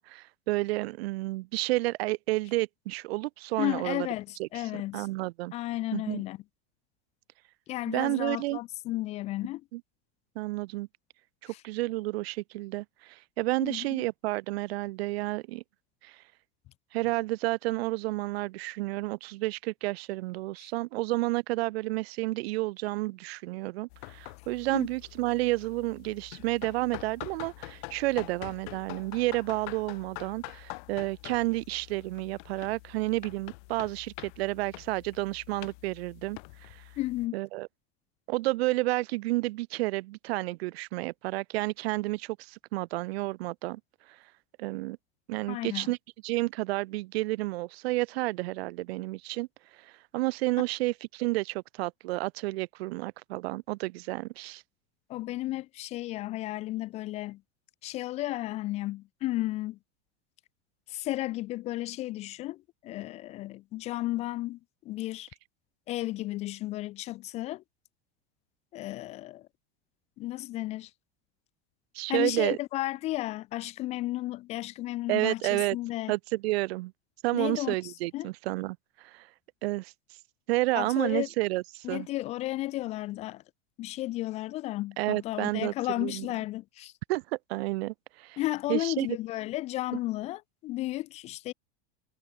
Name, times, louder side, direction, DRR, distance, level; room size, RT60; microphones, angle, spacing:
voice 1, 0.0-4.1 4.4-4.5 4.9-5.5 5.9-6.2 7.9-8.6 9.7-9.8 10.4-10.9 11.4-15.6 16.0-16.2 16.9-36.8 37.3-37.7 38.3-43.8 44.6-45.0 45.3-46.0 46.2-49.5 49.8-54.6 71.9-72.6 75.1-75.8 76.1-76.9 77.2-79.3 79.6-79.9 80.5-82.1 85.0-86.3 87.1-87.2 87.5-88.4 88.7-89.1, right 20 dB, 75° right, 0.7 m, -31 dB
voice 2, 3.6-5.1 5.5-6.4 7.7-9.6 11.5-11.6 13.6-14.0 20.6-20.7 24.7-24.9 37.0-37.3 45.5-45.9 55.1-57.4 57.8-59.8 60.9-65.3 65.9-67.6 68.7-69.5 70.2-70.9 72.1-76.1 77.3-78.3 80.8-81.3 81.8-83.4 83.8-86.9 88.4-91.5, left 16 dB, 20° left, 0.4 m, -33 dB
sound 1, 23.9-37.3, left 29 dB, 50° left, 3.6 m, -46 dB
supercardioid pair, 175°, 31 cm